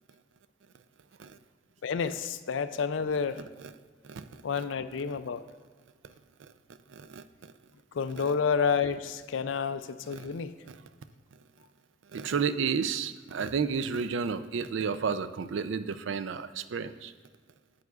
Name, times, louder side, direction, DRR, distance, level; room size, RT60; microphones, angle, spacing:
voice 1, 1.8-3.4 4.4-5.5 7.9-10.5, left 6 dB, 90° left, 12 dB, 0.4 m, -30 dB
voice 2, 4.0-4.4 6.4-6.5 6.9-7.5 8.2-8.3 10.1-10.3 10.7-10.8 12.1-17.1, right 6 dB, 85° right, 12 dB, 0.4 m, -32 dB
10.5 x 8.0 x 2.4 m, 1.5 s
head